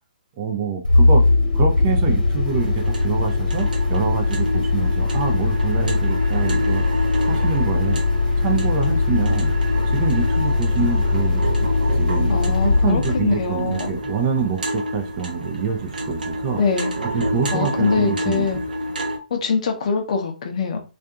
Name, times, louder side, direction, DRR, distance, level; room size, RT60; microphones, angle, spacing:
voice 1, 0.4-1.2 1.5-6.8 7.3-8.0 8.4-9.5 9.9-11.4 11.9-16.6 17.1-18.6, right 6 dB, 30° right, 0.4 m, -26 dB
sound 1, 0.8-14.3, left 3 dB, 75° left, 1.0 m, -20 dB
sound 2, 2.4-19.2, equal, 65° right, 0.6 m, -29 dB
voice 2, 12.3-13.9 16.6-16.9 17.5-18.6 19.3-20.8, left 5 dB, 45° left, 0.6 m, -23 dB
2.5 x 2.4 x 2.3 m
figure-of-eight pair, 130°, 5 cm